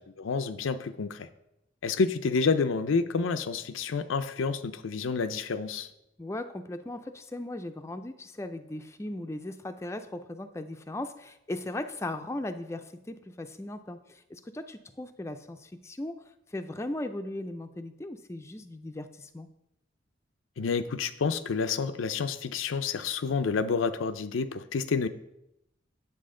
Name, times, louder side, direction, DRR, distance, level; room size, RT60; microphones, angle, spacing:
voice 1, 0.2-1.3 1.8-5.9 20.6-25.1, left 5 dB, 90° left, 11 dB, 0.5 m, -29 dB
voice 2, 6.2-16.2 16.5-19.5, left 1 dB, 15° left, 8 dB, 0.4 m, -38 dB
8.5 x 7.5 x 3.7 m, 0.85 s
head